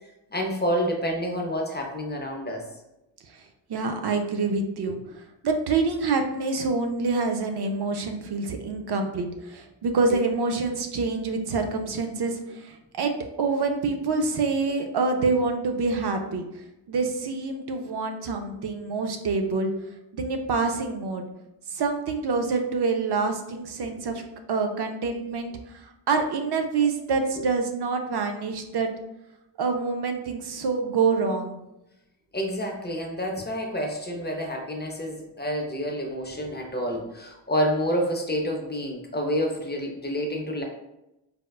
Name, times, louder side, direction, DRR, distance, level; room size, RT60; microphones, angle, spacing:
voice 1, 0.3-2.7 32.3-40.6, equal, 25° left, 1 dB, 0.5 m, -28 dB
voice 2, 3.7-5.0 5.4-13.1 13.4-16.4 16.9-19.7 20.1-21.3 21.7-24.2 24.5-28.9 29.6-31.6, right 4 dB, 60° right, 5 dB, 0.5 m, -26 dB
4.2 x 2.2 x 2.3 m, 0.89 s
wide cardioid pair, 95°, 45 cm